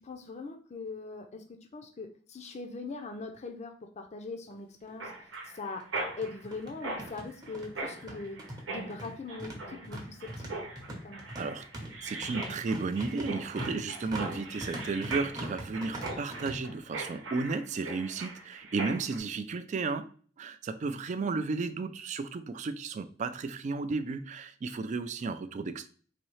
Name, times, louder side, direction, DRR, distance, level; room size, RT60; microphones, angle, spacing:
voice 1, 0.0-5.9 6.2-8.4 8.7-10.5 10.9-11.2 21.2-21.4, left 3 dB, 35° left, 0.5 m, -41 dB
sound 1, 4.5-4.6 4.9-5.0 5.8-16.5, right 1 dB, 20° right, 0.8 m, -42 dB
Mechanisms, 5.0-19.2, right 2 dB, 90° right, 1.0 m, -40 dB
voice 2, 11.4-11.7 12.0-25.9, right 4 dB, 40° right, 0.3 m, -34 dB
4.1 x 2.7 x 3.1 m
head